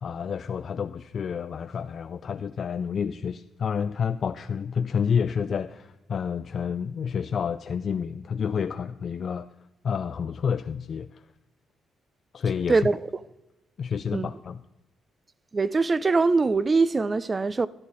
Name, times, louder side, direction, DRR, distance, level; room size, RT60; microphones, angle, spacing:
voice 1, 0.0-9.5 9.8-11.3 12.3-12.9 13.8-14.6, left 7 dB, 50° left, 0.3 m, -29 dB
voice 2, 12.7-13.0 14.1-14.3 15.5-17.7, right 3 dB, 30° right, 0.4 m, -22 dB
11.5 x 11.0 x 3.9 m
cardioid pair, 90°, 0 cm